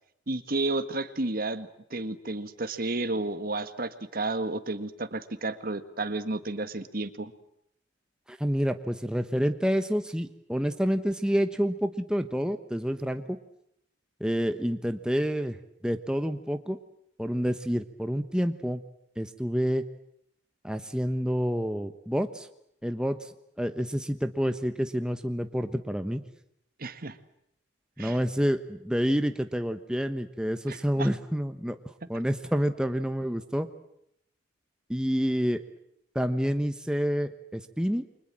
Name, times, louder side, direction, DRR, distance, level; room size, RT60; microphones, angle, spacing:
voice 1, 0.3-7.3 26.8-27.2 28.0-28.2 30.7-31.1, right 2 dB, 50° right, 11 dB, 1.7 m, -32 dB
voice 2, 8.3-13.4 14.2-15.6 15.8-16.8 17.2-18.8 19.2-19.8 20.6-22.5 22.8-26.2 28.0-31.8 32.1-33.7 34.9-35.6 36.1-38.0, equal, 5° right, 7 dB, 1.1 m, -28 dB
29.5 x 24.5 x 7.6 m, 0.75 s
head